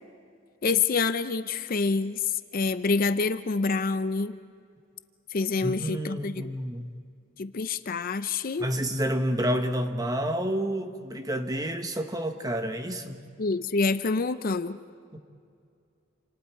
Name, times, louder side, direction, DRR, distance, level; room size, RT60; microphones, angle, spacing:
voice 1, 0.6-4.4 5.3-6.5 7.4-8.7 13.4-14.8, left 4 dB, 45° left, 12 dB, 0.6 m, -27 dB
voice 2, 5.6-6.9 8.6-13.2 15.1-15.2, equal, 20° right, 7 dB, 1.3 m, -29 dB
28.5 x 27.0 x 4.6 m, 2.3 s
head